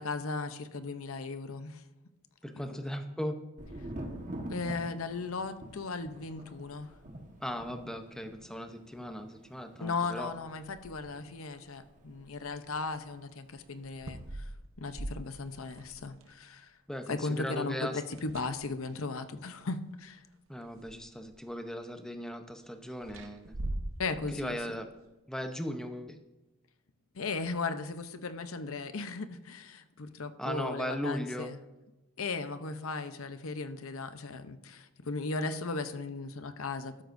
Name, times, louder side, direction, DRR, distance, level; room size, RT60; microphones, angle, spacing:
voice 1, 0.0-1.8 2.6-2.8 4.5-6.9 9.8-14.5 14.8-16.7 17.1-20.2 24.0-24.6 27.1-31.6 32.2-37.0, left 3 dB, 75° left, 10 dB, 0.8 m, -37 dB
voice 2, 2.4-3.4 7.4-10.3 16.9-18.0 20.5-23.6 24.4-24.9 25.3-26.2 30.4-31.5, equal, 5° left, 6 dB, 0.8 m, -37 dB
Thunder, 3.6-13.2 13.5-14.2, right 1 dB, 35° right, 1.4 m, -46 dB
sound 1, 13.8-16.3 18.0-19.0 20.1-20.2 20.7-21.5 23.0-24.8, right 1 dB, 70° right, 0.9 m, -41 dB
13.0 x 12.5 x 2.6 m, 1.0 s
head